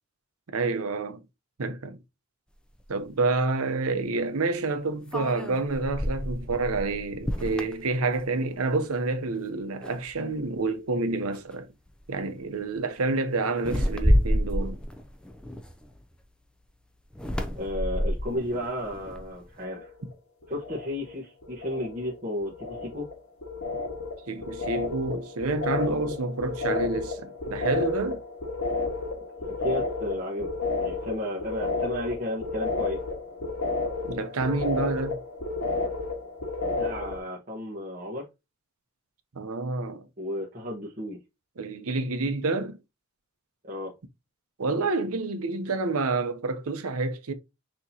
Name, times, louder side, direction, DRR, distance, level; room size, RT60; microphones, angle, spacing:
voice 1, 0.5-1.2 1.6-2.0 2.9-11.7 12.1-14.8 24.3-28.2 34.0-35.2 39.3-40.1 41.6-42.8 44.6-47.3, right 3 dB, 85° right, 0.7 m, -28 dB
sound 1, 2.8-2.9 5.1-8.7 9.1-9.4 9.8-10.5 11.3-11.5 11.9-12.2 13.6-16.2 17.1-19.5, equal, 5° left, 0.4 m, -29 dB
voice 2, 17.6-19.9 20.5-23.1 29.5-30.5 30.8-33.0 36.6-38.3 40.2-41.2 43.7-43.9, left 1 dB, 35° right, 1.2 m, -33 dB
sound 2, 19.5-20.1 20.4-21.2 21.4-37.2, left 3 dB, 85° left, 1.5 m, -32 dB
6.1 x 2.9 x 2.7 m
head